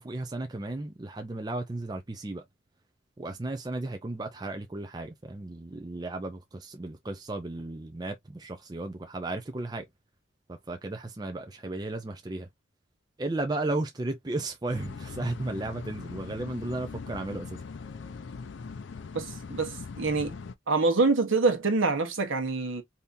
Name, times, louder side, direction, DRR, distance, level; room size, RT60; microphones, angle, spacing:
voice 1, 0.0-2.4 3.2-9.9 10.5-12.5 13.2-17.5, right 2 dB, 20° right, 0.4 m, -34 dB
sound 1, 14.7-20.5, left 4 dB, 60° left, 0.4 m, -41 dB
voice 2, 19.1-20.3 20.7-22.8, right 3 dB, 75° right, 1.0 m, -26 dB
3.5 x 2.8 x 2.5 m
head